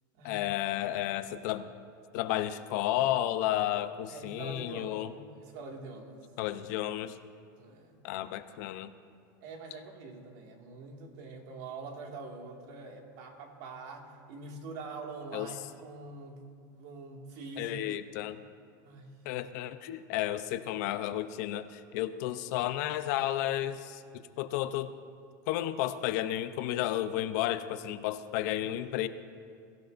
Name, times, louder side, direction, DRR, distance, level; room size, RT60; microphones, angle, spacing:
voice 1, 0.2-1.7 2.1-5.1 6.4-7.2 8.0-8.9 15.3-15.5 17.6-18.4 19.2-24.9 25.5-29.1, left 13 dB, 60° left, 11 dB, 0.6 m, -32 dB
voice 2, 4.1-6.2 7.6-8.0 9.4-16.4 16.7-17.8 18.8-19.1 28.6-28.8, right 3 dB, 60° right, 1 dB, 2.0 m, -45 dB
22.5 x 14.5 x 2.6 m, 2.3 s
supercardioid pair, 155°, 10 cm